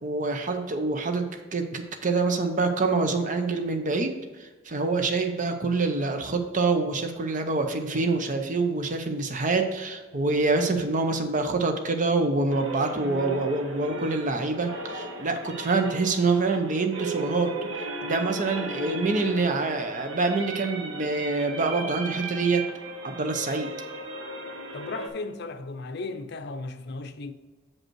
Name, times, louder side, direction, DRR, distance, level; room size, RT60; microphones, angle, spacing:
voice 1, 0.0-17.6 18.0-22.7 23.0-23.7, right 3 dB, 40° right, 0.7 m, -26 dB
sound 1, 12.5-25.1, right 2 dB, 75° right, 1.0 m, -36 dB
voice 2, 24.7-27.3, left 3 dB, 55° left, 0.6 m, -35 dB
7.4 x 5.3 x 4.6 m
head